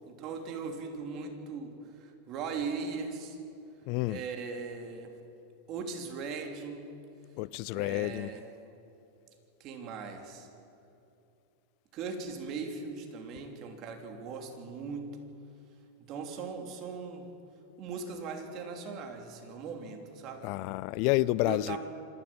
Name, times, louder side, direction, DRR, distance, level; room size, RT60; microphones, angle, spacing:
voice 1, 0.1-3.4 4.1-5.1 5.7-6.9 7.7-8.5 9.6-10.5 11.9-15.3 16.1-17.3 17.8-20.5 21.4-21.8, right 5 dB, 45° right, 3.2 m, -39 dB
voice 2, 3.9-4.2 7.4-8.3 20.4-21.8, left 19 dB, 55° left, 0.4 m, -29 dB
26.0 x 12.5 x 8.8 m
supercardioid pair, 125°, 0 cm